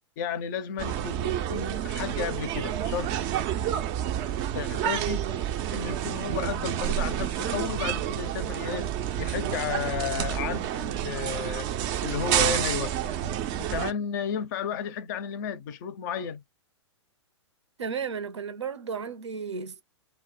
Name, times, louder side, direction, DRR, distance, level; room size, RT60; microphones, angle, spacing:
voice 1, 0.2-3.1 4.5-5.4 5.7-8.9 9.2-11.7 12.0-13.2 13.6-16.4, left 7 dB, 40° left, 0.5 m, -33 dB
sound 1, 0.8-13.9, right 11 dB, 30° right, 0.4 m, -29 dB
voice 2, 17.8-19.8, right 6 dB, 70° right, 0.6 m, -33 dB
2.1 x 2.0 x 3.5 m
figure-of-eight pair, 110°, 15 cm